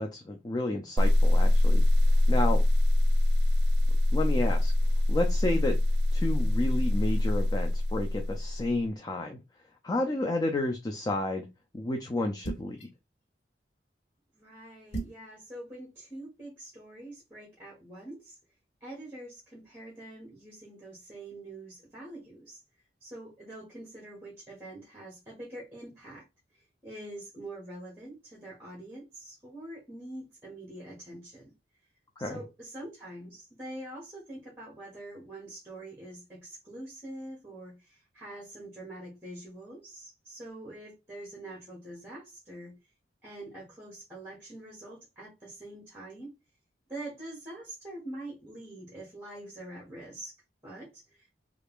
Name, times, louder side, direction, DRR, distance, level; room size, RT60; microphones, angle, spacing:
voice 1, 0.0-1.8 2.3-2.6 4.1-4.7 5.1-5.8 6.1-9.4 9.8-11.5 11.7-12.8 32.2-32.4, left 2 dB, 20° left, 0.4 m, -31 dB
sound 1, 1.0-8.8, left 1 dB, 60° right, 0.4 m, -24 dB
sound 2, 12.4-12.8 14.9-15.3, right 3 dB, 65° left, 1.3 m, -36 dB
voice 2, 14.3-18.4 18.8-22.6 23.0-26.3 26.6-31.4 32.2-42.8 43.2-46.3 46.9-51.3, right 1 dB, 10° right, 1.2 m, -45 dB
3.3 x 2.4 x 3.5 m
head